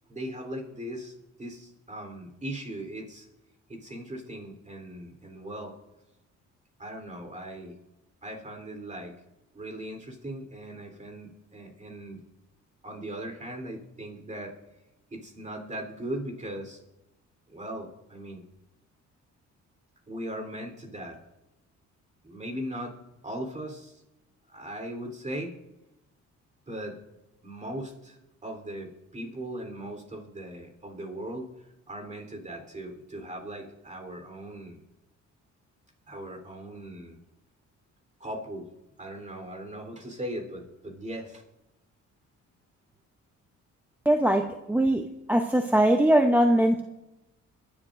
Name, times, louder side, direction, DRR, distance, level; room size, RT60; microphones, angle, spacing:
voice 1, 0.1-3.3 3.7-5.7 6.8-7.8 8.2-9.1 9.5-12.2 12.8-14.5 15.1-16.8 17.5-18.4 20.1-21.2 22.2-23.0 23.2-23.9 24.5-25.5 26.7-27.0 27.4-31.5 31.9-34.8 36.1-37.2 38.2-38.7 39.0-41.4, right 1 dB, 25° right, 3 dB, 3.7 m, -38 dB
voice 2, 44.1-46.8, right 1 dB, 5° right, 5 dB, 0.8 m, -22 dB
24.5 x 11.0 x 2.6 m, 0.95 s
cardioid pair, 90°, 30 cm